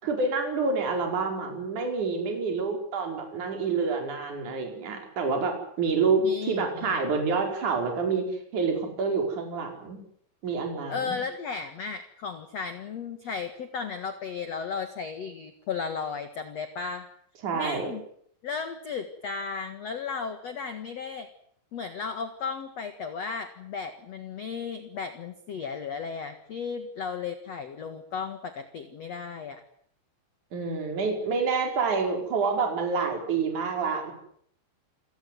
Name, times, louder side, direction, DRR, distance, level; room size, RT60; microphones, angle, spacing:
voice 1, 0.0-10.0 10.4-11.2 17.4-17.9 30.5-34.1, right 4 dB, 40° right, 3 dB, 6.0 m, -28 dB
voice 2, 6.2-7.2 10.9-17.0 17.5-18.0 18.4-21.3 21.7-29.6, left 5 dB, 60° left, 8 dB, 1.7 m, -35 dB
28.5 x 17.0 x 9.4 m, 0.66 s
omnidirectional pair, 5.6 m